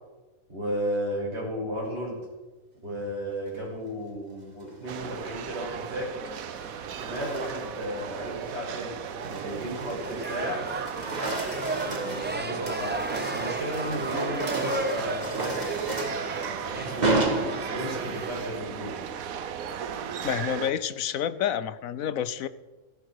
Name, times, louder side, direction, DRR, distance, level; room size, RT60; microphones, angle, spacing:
voice 1, 0.5-2.2 2.8-6.1 6.9-10.6 11.8-15.6 16.1-17.4 17.7-19.0, equal, 50° right, -4 dB, 7.3 m, -34 dB
sound 1, 4.7-5.2 6.3-7.8 8.3-8.6 9.0-10.5 10.7-18.1, right 2 dB, 30° right, 1.7 m, -33 dB
sound 2, 4.9-20.7, right 8 dB, 80° right, 1.3 m, -36 dB
sound 3, 10.0-18.3, right 1 dB, 15° right, 0.4 m, -35 dB
voice 2, 20.2-22.5, left 9 dB, 75° left, 14 dB, 1.2 m, -29 dB
17.0 x 16.5 x 4.8 m, 1.2 s
omnidirectional pair, 1.4 m